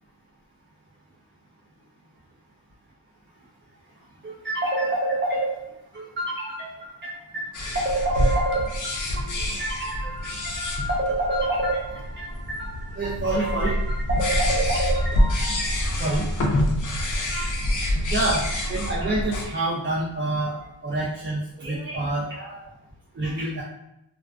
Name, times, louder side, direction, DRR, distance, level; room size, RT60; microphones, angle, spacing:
voice 1, 4.2-5.6 5.9-16.3 17.3-17.8 18.1-22.7 23.1-23.6, right 1 dB, 25° right, -6 dB, 0.4 m, -28 dB
sound 1, 7.5-19.5, equal, 45° left, 0.5 m, -26 dB
2.3 x 2.3 x 2.4 m, 0.84 s
wide cardioid pair, 120°, 47 cm